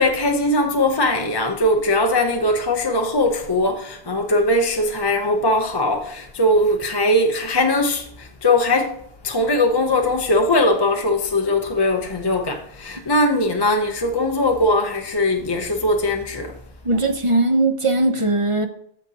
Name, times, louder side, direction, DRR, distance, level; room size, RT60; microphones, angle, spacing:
voice 1, 0.0-9.0 9.2-16.6, left 1 dB, 25° left, 0.7 m, -20 dB
voice 2, 16.8-18.7, right 2 dB, 35° right, 0.8 m, -19 dB
13.5 x 5.0 x 2.8 m
omnidirectional pair, 1.1 m